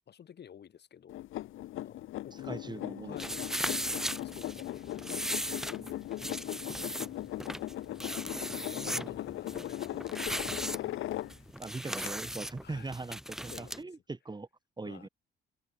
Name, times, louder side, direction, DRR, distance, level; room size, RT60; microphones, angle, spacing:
voice 1, 0.1-1.2 1.8-5.8 8.5-10.8 12.6-12.9 13.5-13.9 14.8-15.1, left 8 dB, 55° left, 4.6 m, -51 dB
puodel sukas, 1.1-11.6 12.0-12.1, left 15 dB, 85° left, 1.7 m, -39 dB
voice 2, 2.4-3.3 8.7-9.1 11.6-14.5 14.8-15.1, right 3 dB, 20° right, 4.1 m, -41 dB
sound 1, 3.2-13.8, equal, ahead, 1.8 m, -38 dB
cardioid pair, 90°, 20 cm